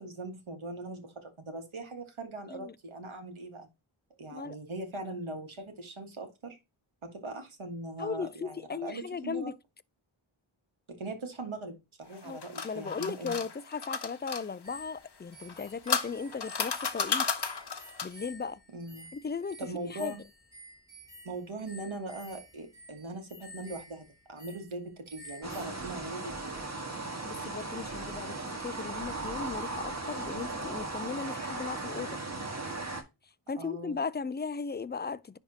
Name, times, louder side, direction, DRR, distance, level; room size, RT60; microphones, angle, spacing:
voice 1, 0.0-3.7 4.2-6.6 7.0-9.5 10.9-13.3 18.7-19.1 19.6-20.2 21.2-26.6 33.6-34.0, right 2 dB, 70° right, 1.7 m, -40 dB
voice 2, 8.0-9.5 12.2-17.3 18.0-18.6 19.1-20.2 27.3-32.2 33.5-35.4, left 5 dB, 25° left, 0.3 m, -37 dB
sound 1, 12.1-14.4 15.4-18.2, left 6 dB, 55° left, 0.9 m, -33 dB
sound 2, 14.6-25.7, equal, 5° right, 3.6 m, -52 dB
sound 3, 25.4-33.0, right 2 dB, 30° right, 1.6 m, -37 dB
10.5 x 3.5 x 2.8 m
wide cardioid pair, 60°, 50 cm